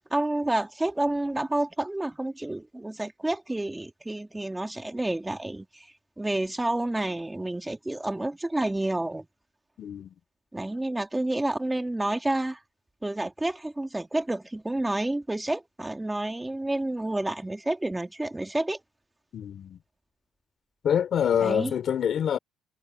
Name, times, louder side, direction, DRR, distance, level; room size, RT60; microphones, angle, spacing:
voice 1, 0.0-9.3 10.5-12.6 13.0-18.8 21.4-21.7, right 1 dB, 10° right, 2.3 m, -29 dB
voice 2, 9.8-10.1 19.3-19.8 20.8-22.4, left 8 dB, 55° left, 3.3 m, -26 dB
cardioid pair, 105°, 0 cm